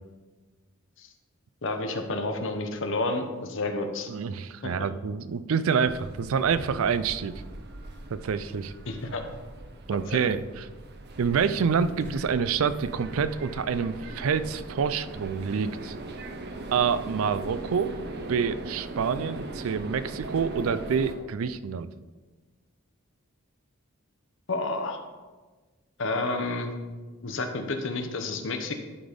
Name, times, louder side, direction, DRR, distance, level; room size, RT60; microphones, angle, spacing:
voice 1, 1.6-4.1 4.6-4.7 8.9-9.2 10.1-10.4 24.5-25.0 26.0-26.8 27.2-28.7, left 2 dB, 65° left, 5 dB, 0.9 m, -30 dB
voice 2, 4.1-7.4 8.1-8.7 9.9-10.6 11.2-16.0 16.7-18.0 18.3-21.9, right 6 dB, 75° right, 14 dB, 0.4 m, -27 dB
sound 1, 5.8-21.1, right 2 dB, 50° right, 0.8 m, -40 dB
11.0 x 4.1 x 5.1 m, 1.3 s
head